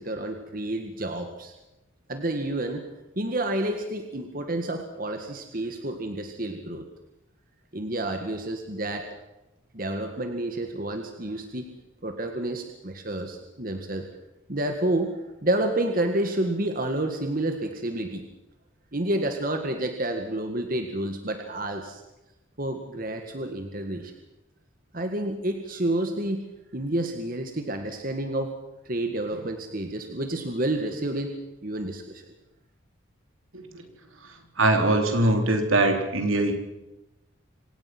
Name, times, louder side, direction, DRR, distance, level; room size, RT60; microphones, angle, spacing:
voice 1, 0.0-1.5 2.1-2.9 3.2-6.8 7.7-9.0 9.7-11.7 12.0-14.1 14.5-15.1 15.4-18.2 18.9-22.0 22.6-24.1 24.9-26.5 26.7-28.5 28.9-31.3 31.6-32.2, right 1 dB, 45° right, 5 dB, 1.9 m, -29 dB
voice 2, 34.6-36.5, right 2 dB, 80° right, 4 dB, 3.7 m, -22 dB
26.0 x 18.0 x 6.1 m, 0.98 s
head